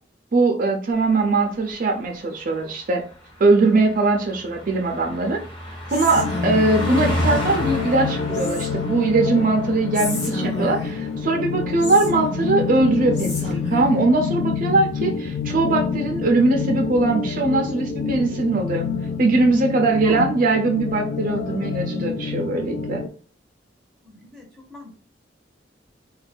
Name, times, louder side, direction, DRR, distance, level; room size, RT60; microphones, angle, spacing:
voice 1, 0.3-3.0 3.4-5.4 5.9-18.8 19.2-23.0, right 3 dB, 50° right, 2 dB, 0.5 m, -21 dB
Car passing by, 1.0-12.9 13.2-13.5, equal, 30° left, 1.1 m, -33 dB
Whispering, 5.9-7.0 8.3-9.0 9.9-11.1 11.8-12.7 13.1-14.0, left 2 dB, 85° left, 0.9 m, -32 dB
sound 1, 6.2-23.1, left 6 dB, 55° left, 0.3 m, -27 dB
voice 2, 19.9-20.3 24.0-24.4 24.7-24.9, left 3 dB, ahead, -1 dB, 0.8 m, -34 dB
2.5 x 2.3 x 3.4 m, 0.41 s
head